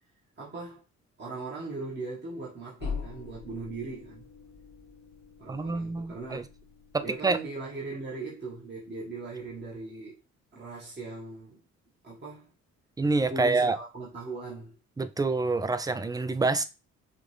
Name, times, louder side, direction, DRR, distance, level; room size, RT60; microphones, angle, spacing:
voice 1, 0.4-0.8 1.2-4.2 5.4-6.4 7.0-10.2 10.5-11.6 12.0-12.5 13.3-14.7, right 3 dB, 35° right, 1.6 m, -39 dB
sound 1, 2.8-7.5, left 5 dB, 80° left, 1.0 m, -42 dB
voice 2, 5.5-6.4 6.9-7.4 13.0-13.8 15.0-16.6, right 3 dB, 15° right, 0.4 m, -27 dB
5.1 x 2.5 x 3.3 m
cardioid pair, 90°, 30 cm